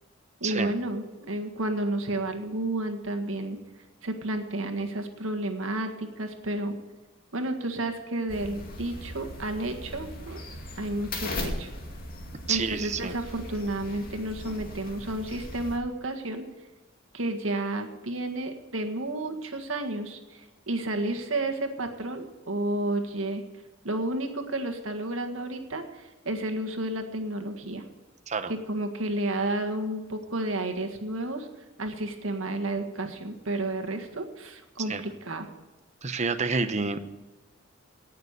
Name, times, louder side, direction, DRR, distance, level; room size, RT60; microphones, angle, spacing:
voice 1, 0.4-3.6 4.0-6.7 7.3-10.4 10.8-11.7 12.5-16.5 17.1-23.4 23.8-27.8 28.5-31.5 31.8-35.5, right 1 dB, 90° right, 5 dB, 1.8 m, -31 dB
sound 1, 8.3-15.8, left 1 dB, 50° left, 2.5 m, -38 dB
voice 2, 12.5-13.1 28.3-28.5 34.9-35.0 36.0-37.0, right 4 dB, 35° right, 10 dB, 0.8 m, -28 dB
18.5 x 6.8 x 6.7 m, 1.2 s
head